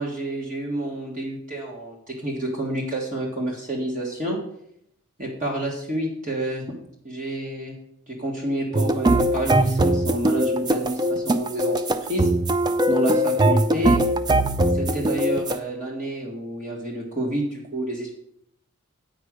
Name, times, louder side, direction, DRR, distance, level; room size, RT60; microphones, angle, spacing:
voice 1, 0.0-4.4 5.2-6.6 7.0-7.8 8.1-11.8 12.1-12.3 12.9-14.0 14.7-18.1, right 1 dB, 35° right, -2 dB, 1.6 m, -29 dB
sound 1, 8.7-15.6, right 1 dB, 20° right, 0.3 m, -21 dB
8.9 x 4.9 x 6.3 m, 0.70 s
head